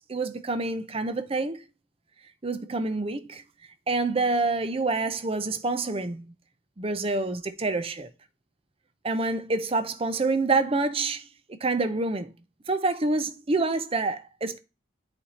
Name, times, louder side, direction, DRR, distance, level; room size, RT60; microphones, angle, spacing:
voice 1, 0.0-1.6 2.4-3.4 3.9-6.3 6.8-8.1 9.0-11.2 11.6-12.3 12.7-14.6, right 3 dB, 30° right, 0.6 m, -27 dB
8.3 x 3.5 x 4.1 m
head